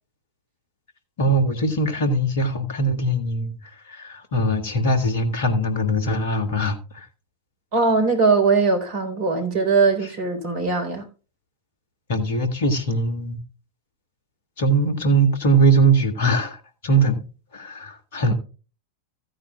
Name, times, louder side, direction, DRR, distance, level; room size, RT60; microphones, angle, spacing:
voice 1, 1.2-7.1 12.1-13.4 14.6-17.2 17.5-18.3, right 2 dB, 55° left, 2.0 m, -21 dB
voice 2, 7.7-11.1, right 4 dB, 45° right, 4.0 m, -20 dB
15.0 x 9.4 x 2.4 m
figure-of-eight pair, 90°, 0 cm